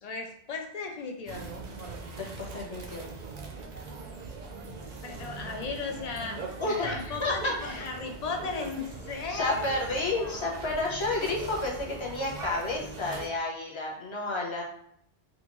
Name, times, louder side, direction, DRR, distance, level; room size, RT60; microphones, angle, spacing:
voice 1, 0.0-1.5 5.0-6.4 6.6-9.9 10.2-10.5, left 4 dB, 60° left, 3 dB, 0.4 m, -36 dB
sound 1, 1.3-13.3, right 3 dB, 55° right, 0.5 m, -41 dB
voice 2, 2.2-3.1 6.6-7.9 9.3-14.6, left 2 dB, 30° left, -2 dB, 0.6 m, -31 dB
3.7 x 2.4 x 2.9 m, 0.70 s
omnidirectional pair, 1.2 m